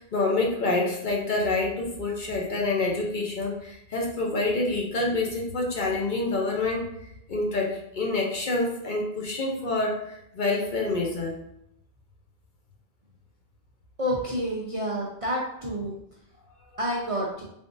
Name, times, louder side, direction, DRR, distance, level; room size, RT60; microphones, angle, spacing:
voice 1, 0.0-6.9 7.3-11.4, left 2 dB, 55° left, -1 dB, 0.8 m, -27 dB
voice 2, 14.0-15.9 16.8-17.4, equal, 45° right, -4 dB, 0.5 m, -29 dB
3.5 x 3.4 x 2.5 m, 0.76 s
omnidirectional pair, 1.1 m